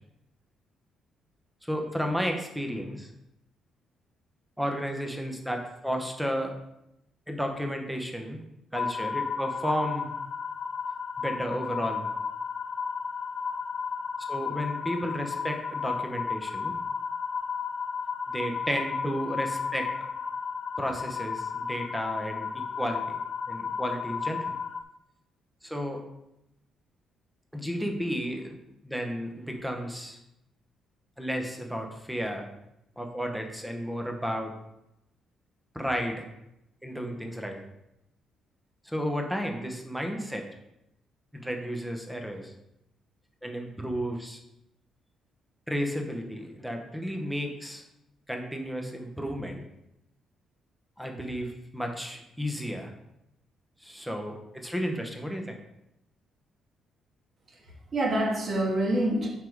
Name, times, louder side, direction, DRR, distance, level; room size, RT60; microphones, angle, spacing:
voice 1, 1.6-3.1 4.6-6.5 7.3-8.4 8.7-10.1 11.2-12.1 14.2-16.8 18.3-20.1 20.8-23.0 23.5-24.5 25.6-26.0 27.5-28.6 28.8-30.2 31.2-32.5 33.0-34.5 35.7-36.3 36.8-37.6 38.8-40.4 41.3-42.5 43.4-44.4 45.7-47.8 48.3-49.6 51.0-52.9 53.8-55.6, equal, ahead, 3 dB, 0.9 m, -32 dB
sound 1, 8.7-24.8, left 5 dB, 40° left, 0.3 m, -33 dB
voice 2, 57.5-59.3, right 1 dB, 35° right, -1 dB, 1.5 m, -27 dB
5.9 x 4.6 x 4.7 m, 0.85 s
cardioid pair, 155°, 0 cm